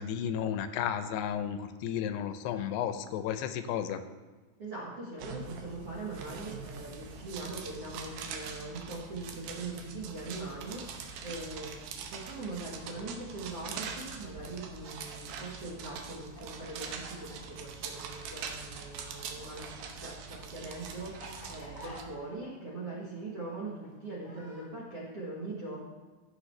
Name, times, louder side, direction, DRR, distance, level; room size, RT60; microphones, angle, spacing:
voice 1, 0.0-4.0, left 9 dB, 85° left, 10 dB, 2.6 m, -33 dB
voice 2, 4.6-25.8, right 2 dB, 60° right, -3 dB, 1.6 m, -41 dB
sound 1, 5.2-22.0, right 5 dB, 75° right, 2.0 m, -43 dB
Chicken rooster, 14.4-18.8 19.0-24.7, left 1 dB, 60° left, 0.8 m, -51 dB
15.5 x 6.1 x 3.2 m, 1.3 s
omnidirectional pair, 4.7 m